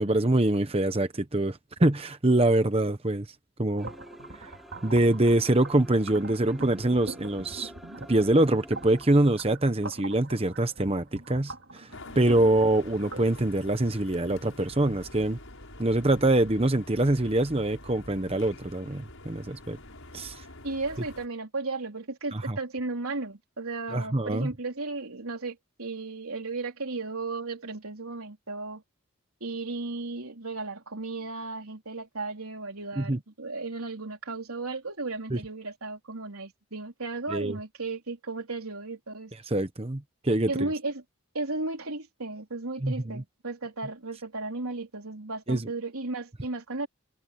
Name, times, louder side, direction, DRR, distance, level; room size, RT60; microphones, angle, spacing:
voice 1, 0.0-3.3 3.6-3.9 4.4-4.5 4.8-7.7 8.1-11.9 12.1-15.4 15.8-19.8 20.1-20.4 22.3-22.6 23.9-24.5 33.0-33.2 35.3-35.4 37.3-37.6 39.5-40.7 42.8-43.2 45.5-45.6, right 1 dB, 25° right, 1.0 m, -24 dB
sound 1, 3.8-9.2, equal, ahead, 3.2 m, -48 dB
sound 2, 3.8-13.3, right 2 dB, 60° right, 3.1 m, -44 dB
sound 3, 11.9-21.3, left 2 dB, 70° left, 6.1 m, -46 dB
voice 2, 12.3-12.6 20.6-28.8 29.4-39.3 40.5-41.0 41.3-46.9, right 3 dB, 85° right, 3.8 m, -35 dB
head